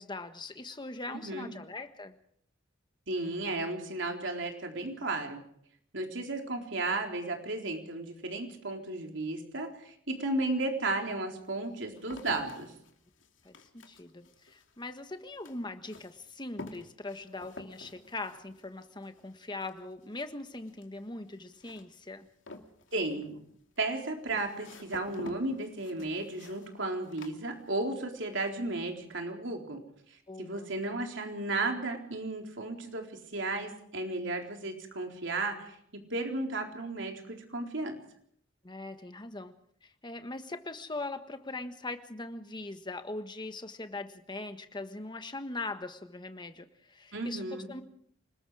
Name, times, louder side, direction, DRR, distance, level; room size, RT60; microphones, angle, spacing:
voice 1, 0.0-2.1 13.4-22.3 30.3-30.7 38.6-39.5 39.8-47.8, left 2 dB, 25° left, 8 dB, 1.5 m, -41 dB
voice 2, 1.1-1.5 3.1-5.4 5.9-12.7 22.9-23.4 23.8-29.8 30.4-38.0 47.1-47.7, right 2 dB, 70° right, 2 dB, 4.0 m, -34 dB
sound 1, 10.1-10.2 10.9-28.1 28.4-28.9, left 2 dB, 85° left, 2.6 m, -50 dB
28.0 x 20.0 x 4.9 m, 0.67 s
head